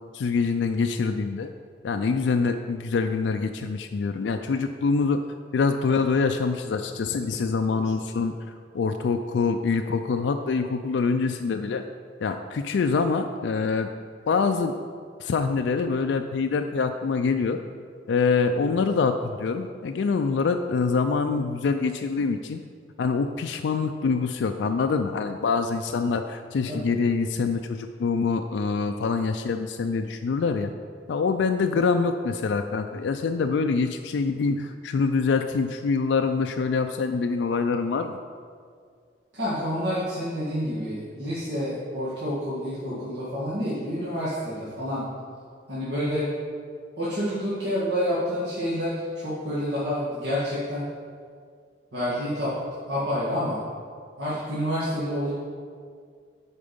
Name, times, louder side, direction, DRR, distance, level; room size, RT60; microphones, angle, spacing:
voice 1, 0.1-1.5 1.8-5.2 5.5-8.3 8.7-11.8 12.2-13.9 14.3-14.7 15.2-17.6 18.1-22.6 23.0-30.7 31.1-38.2, left 4 dB, 80° left, 6 dB, 0.4 m, -25 dB
voice 2, 39.3-45.0 45.7-46.3 47.0-50.9 51.9-52.5 52.9-53.6 54.2-55.3, equal, 70° right, -10 dB, 1.8 m, -28 dB
8.6 x 4.5 x 5.3 m, 2.1 s
head